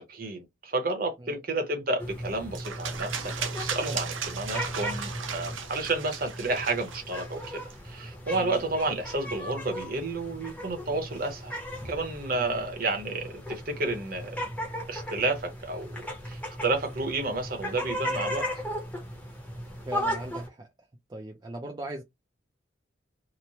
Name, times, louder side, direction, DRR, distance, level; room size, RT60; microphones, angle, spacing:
voice 1, 0.0-11.5 11.8-14.4 14.9-18.5, right 2 dB, 45° right, 0.9 m, -31 dB
sound 1, 2.0-20.5, equal, 10° left, 0.7 m, -37 dB
sound 2, 2.6-7.7, right 6 dB, 85° right, 0.6 m, -36 dB
voice 2, 8.3-8.6 12.3-12.6 19.9-20.7 21.1-22.0, right 1 dB, 20° right, 0.4 m, -39 dB
3.0 x 2.1 x 2.7 m
head